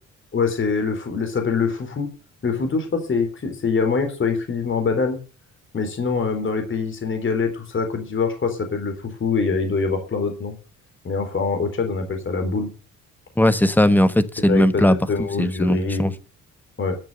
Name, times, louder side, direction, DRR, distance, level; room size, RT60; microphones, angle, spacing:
voice 1, 0.3-2.1 2.4-5.2 5.7-10.6 11.0-12.7 14.5-16.1 16.8-17.0, left 4 dB, 40° left, 3.7 m, -24 dB
voice 2, 13.4-15.0 15.4-16.1, left 1 dB, 5° left, 1.2 m, -18 dB
12.0 x 6.6 x 7.6 m
cardioid pair, 90°, 30 cm